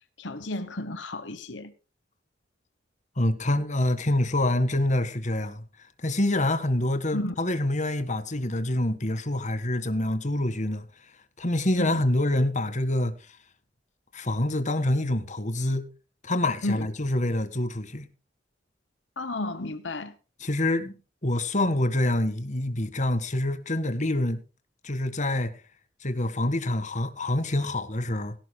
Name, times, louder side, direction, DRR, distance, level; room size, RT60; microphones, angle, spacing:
voice 1, 0.2-1.7 7.1-7.4 11.8-12.0 16.6-16.9 19.2-20.1, left 2 dB, 75° left, 1.2 m, -32 dB
voice 2, 3.2-5.6 6.0-10.8 11.4-13.1 14.1-15.9 16.2-18.1 20.4-21.0 21.2-24.4 24.8-25.6 26.0-28.3, left 1 dB, 40° left, 1.8 m, -26 dB
17.5 x 17.0 x 2.2 m
head